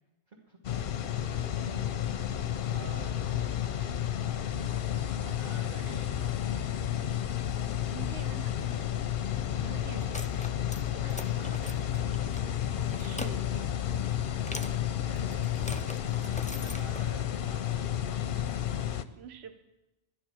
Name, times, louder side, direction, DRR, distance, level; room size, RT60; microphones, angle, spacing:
voice 1, 0.3-0.6 1.1-3.4 5.2-6.7 10.9-12.2 15.1-17.7, right 1 dB, 40° right, -3 dB, 1.7 m, -50 dB
sound 1, 0.6-19.0, left 10 dB, 60° left, 0.7 m, -31 dB
voice 2, 7.8-9.0 9.5-10.5 12.9-14.1 19.1-19.6, right 7 dB, 75° right, 8 dB, 1.1 m, -47 dB
sound 2, 9.9-10.8 11.1-12.4 12.8-13.3 14.5-14.7 15.2-17.0, left 1 dB, 10° left, 0.3 m, -42 dB
12.0 x 10.5 x 6.3 m, 0.98 s
omnidirectional pair, 1.1 m